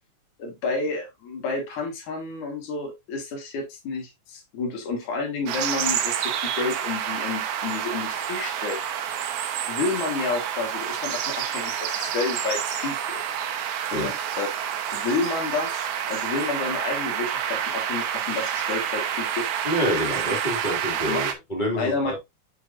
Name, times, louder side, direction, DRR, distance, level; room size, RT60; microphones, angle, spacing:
voice 1, 0.4-8.8 9.7-13.2 13.9-14.5 14.9-19.5 21.1-21.2 21.7-22.2, left 4 dB, 75° left, 3.1 m, -30 dB
sound 1, 5.5-21.3, right 9 dB, 80° right, 2.2 m, -28 dB
voice 2, 19.6-22.2, equal, 20° left, 1.8 m, -27 dB
6.9 x 5.5 x 2.5 m
omnidirectional pair, 3.6 m